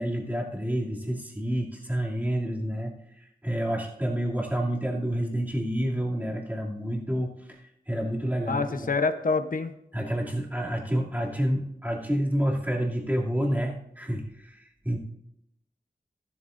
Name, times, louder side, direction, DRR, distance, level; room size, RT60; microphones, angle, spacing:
voice 1, 0.0-2.9 3.4-7.6 7.9-8.9 9.9-15.0, equal, 10° right, -3 dB, 2.7 m, -29 dB
voice 2, 8.5-9.7, left 4 dB, 60° left, 9 dB, 0.8 m, -26 dB
14.0 x 12.5 x 2.6 m, 0.79 s
wide cardioid pair, 100°, 16 cm